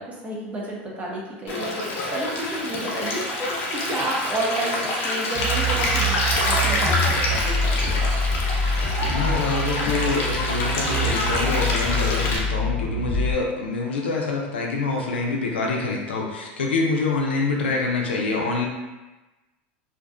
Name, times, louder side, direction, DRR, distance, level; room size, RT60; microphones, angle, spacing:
voice 1, 0.0-3.4 3.7-7.9, right 1 dB, 25° right, -4 dB, 0.7 m, -31 dB
Stream, 1.5-12.4, left 1 dB, 45° left, 0.6 m, -26 dB
sound 1, 5.3-13.3, left 1 dB, 5° left, 0.9 m, -25 dB
voice 2, 8.6-18.7, left 3 dB, 90° left, 0 dB, 0.5 m, -26 dB
2.5 x 2.2 x 2.4 m, 1.1 s
hypercardioid pair, 95°, 6 cm